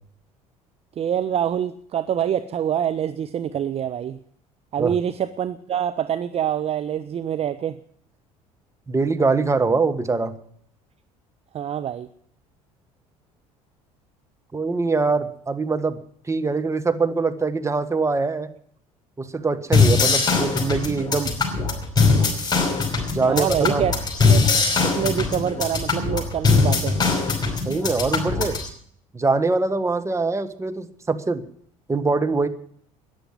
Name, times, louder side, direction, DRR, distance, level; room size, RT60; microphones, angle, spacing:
voice 1, 1.0-4.2 4.7-7.8 11.5-12.1 23.3-23.9 24.2-24.4 24.8-27.0, right 9 dB, 35° right, 12 dB, 0.7 m, -25 dB
voice 2, 8.9-10.3 14.5-16.0 16.3-18.5 19.2-21.3 23.1-23.8 27.6-28.6 29.1-31.4 31.9-32.5, right 3 dB, 15° right, 9 dB, 1.4 m, -23 dB
sound 1, 19.7-28.7, left 4 dB, 20° left, 5.3 m, -21 dB
14.0 x 10.0 x 8.0 m, 0.63 s
figure-of-eight pair, 60°, 18 cm